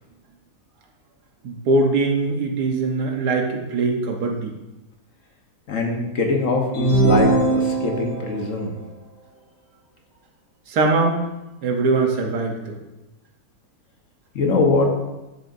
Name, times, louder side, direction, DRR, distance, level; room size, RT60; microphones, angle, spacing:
voice 1, 1.4-4.5 10.7-11.2 11.6-12.8, right 3 dB, 90° right, 2 dB, 1.6 m, -21 dB
voice 2, 5.7-8.7 14.3-14.9, left 3 dB, 55° left, 1 dB, 1.4 m, -22 dB
sound 1, 6.7-8.3, right 2 dB, 35° left, 3.4 m, -19 dB
11.0 x 6.4 x 2.6 m, 0.99 s
omnidirectional pair, 1.7 m